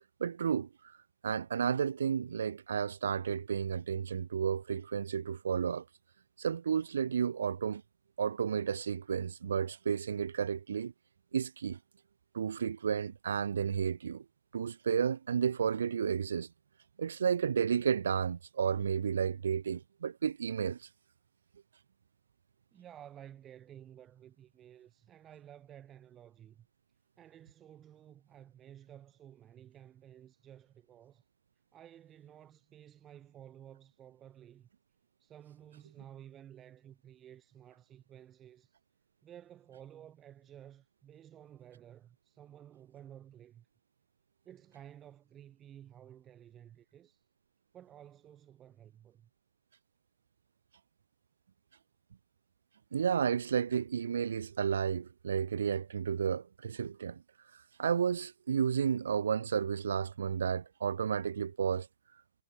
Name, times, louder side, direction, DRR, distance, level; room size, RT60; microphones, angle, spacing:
voice 1, 0.2-0.7 1.2-5.8 6.4-7.8 8.2-10.9 11.3-11.8 12.3-14.2 14.5-16.5 17.0-20.8 52.9-57.2 57.8-61.9, right 7 dB, 60° right, 0.4 m, -32 dB
voice 2, 22.7-26.7 27.2-31.2 31.7-34.7 35.2-38.7 39.2-43.7 44.4-47.2 47.7-49.3, right 10 dB, 20° right, 1.1 m, -54 dB
figure-of-eight pair, 120°, 0 cm